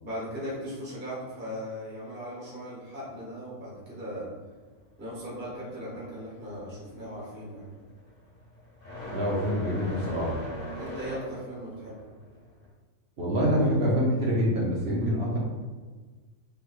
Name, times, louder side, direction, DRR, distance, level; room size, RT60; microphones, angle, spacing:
voice 1, 0.0-4.3 5.0-7.7 10.5-12.0, equal, 10° right, -7 dB, 0.8 m, -38 dB
sound 1, 4.5-12.7, left 1 dB, 10° left, 1.3 m, -42 dB
voice 2, 9.1-10.4 13.2-15.4, equal, 60° right, -5 dB, 0.8 m, -26 dB
3.4 x 3.0 x 2.3 m, 1.4 s
omnidirectional pair, 1.4 m